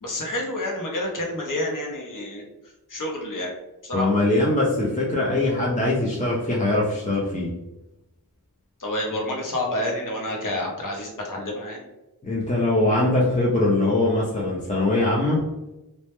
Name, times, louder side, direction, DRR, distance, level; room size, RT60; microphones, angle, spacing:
voice 1, 0.0-2.4 2.9-3.5 3.8-4.1 8.8-11.8, left 1 dB, 55° left, -1 dB, 0.7 m, -29 dB
voice 2, 3.9-7.5 12.2-15.4, left 2 dB, 20° left, -5 dB, 0.4 m, -22 dB
2.1 x 2.0 x 2.9 m, 0.98 s
wide cardioid pair, 70°, 37 cm